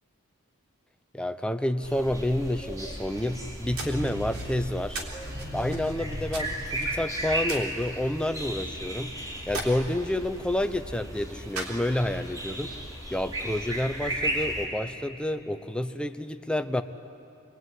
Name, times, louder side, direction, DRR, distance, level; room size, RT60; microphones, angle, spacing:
voice 1, 1.1-5.1 5.5-9.2 9.5-12.8 13.1-16.8, left 1 dB, 5° left, 9 dB, 0.7 m, -29 dB
sound 1, 1.8-14.6, right 1 dB, 15° right, 5.2 m, -35 dB
sound 2, 3.0-12.3, right 2 dB, 75° right, 3.7 m, -42 dB
sound 3, 3.6-7.6, equal, 40° right, 2.8 m, -39 dB
27.0 x 21.0 x 9.5 m, 2.6 s
head